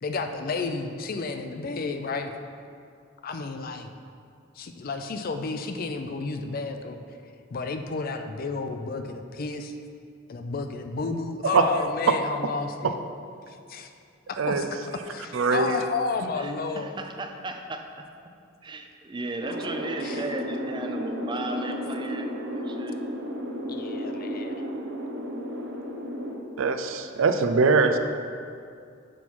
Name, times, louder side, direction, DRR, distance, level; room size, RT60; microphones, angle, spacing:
voice 1, 0.0-2.3 3.2-3.9 4.6-7.0 7.5-9.7 10.3-13.0 13.5-13.9 14.5-14.7 15.1-17.0 20.0-20.2 23.7-24.6, left 4 dB, 45° left, 6 dB, 0.4 m, -31 dB
voice 2, 15.3-15.8 26.6-28.0, right 4 dB, 80° right, 8 dB, 0.4 m, -22 dB
voice 3, 16.4-18.1 18.6-23.0, right 2 dB, 25° right, 5 dB, 0.5 m, -35 dB
sound 1, 19.4-26.3, equal, 60° right, 0.9 m, -33 dB
6.2 x 5.4 x 4.6 m, 2.4 s
head